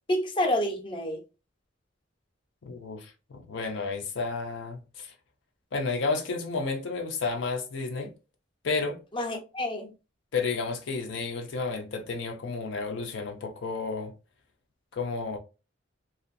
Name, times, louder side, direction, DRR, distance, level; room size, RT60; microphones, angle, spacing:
voice 1, 0.1-1.2 9.1-9.9, left 1 dB, 25° left, 0.6 m, -28 dB
voice 2, 2.6-5.1 5.7-8.1 8.6-9.0 10.3-14.1 14.9-15.4, left 4 dB, 70° left, 0.5 m, -31 dB
2.6 x 2.3 x 2.4 m
head